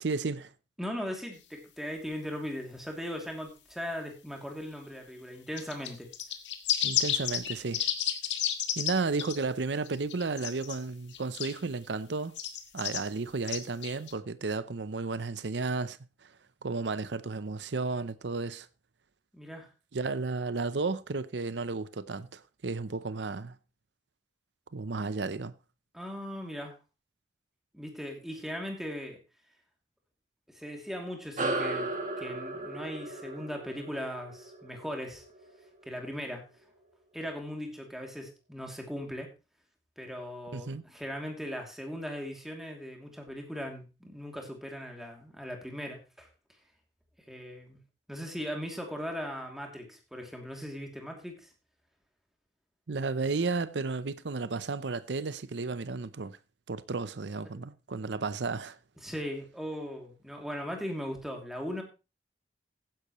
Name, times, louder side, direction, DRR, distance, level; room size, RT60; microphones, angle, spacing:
voice 1, 0.0-0.5 6.8-7.9 8.8-12.4 12.7-16.3 16.6-18.7 19.9-23.6 24.7-25.5 40.5-40.8 52.9-56.4 56.7-58.8, right 3 dB, 75° right, 0.7 m, -33 dB
voice 2, 0.8-6.1 19.3-19.7 25.9-26.8 27.7-29.2 30.5-35.2 35.8-36.4 37.1-39.3 40.0-46.3 47.3-47.8 48.1-51.5 59.0-61.8, equal, ahead, 2.7 m, -38 dB
sound 1, 5.6-8.9 9.2-9.4 9.8-10.8 11.1-11.6 12.3-13.0 13.4-14.1, left 10 dB, 90° left, 1.5 m, -31 dB
sound 2, 31.4-36.2, right 2 dB, 45° right, 2.2 m, -36 dB
15.0 x 10.5 x 3.1 m
head